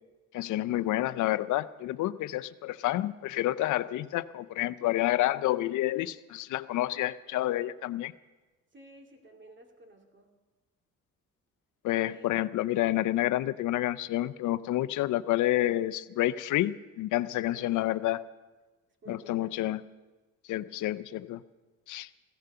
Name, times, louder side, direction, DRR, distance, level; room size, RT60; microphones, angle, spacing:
voice 1, 0.3-8.1 11.8-18.2 19.1-19.8 20.5-21.4 21.9-22.1, left 15 dB, 80° left, 14 dB, 0.6 m, -29 dB
voice 2, 8.7-10.3 12.0-12.2 17.4-18.0 19.0-19.5, right 2 dB, 40° right, 4 dB, 2.4 m, -53 dB
16.0 x 13.5 x 6.7 m, 1.2 s
cardioid pair, 90°, 30 cm